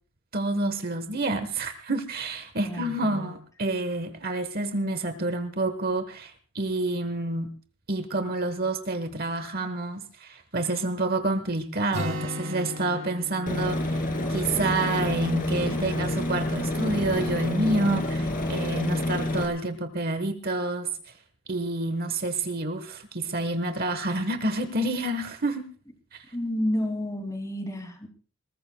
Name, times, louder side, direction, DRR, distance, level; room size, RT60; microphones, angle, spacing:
voice 1, 0.3-7.5 7.9-20.9 21.5-25.7 26.1-26.2, right 2 dB, 45° right, 9 dB, 1.2 m, -28 dB
voice 2, 2.6-3.3 26.3-28.1, left 1 dB, 15° left, 5 dB, 2.7 m, -30 dB
Acoustic guitar, 11.9-15.6, left 1 dB, 60° right, 2.9 m, -37 dB
Aircraft, 13.5-19.5, left 1 dB, 40° left, 2.5 m, -28 dB
21.5 x 19.5 x 2.3 m, 0.39 s
head